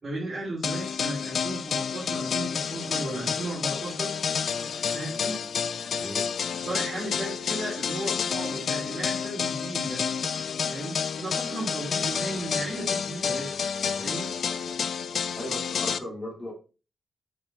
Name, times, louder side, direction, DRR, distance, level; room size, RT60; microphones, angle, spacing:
voice 1, 0.0-4.1 4.9-5.4 6.6-10.0 10.7-13.6 14.0-14.3, right 1 dB, 35° right, -4 dB, 3.2 m, -35 dB
sound 1, 0.6-16.0, left 7 dB, 65° left, 0.6 m, -30 dB
voice 2, 6.0-6.3 15.4-16.5, left 1 dB, 15° left, -2 dB, 3.3 m, -37 dB
6.8 x 6.4 x 4.5 m, 0.32 s
wide cardioid pair, 140°, 0 cm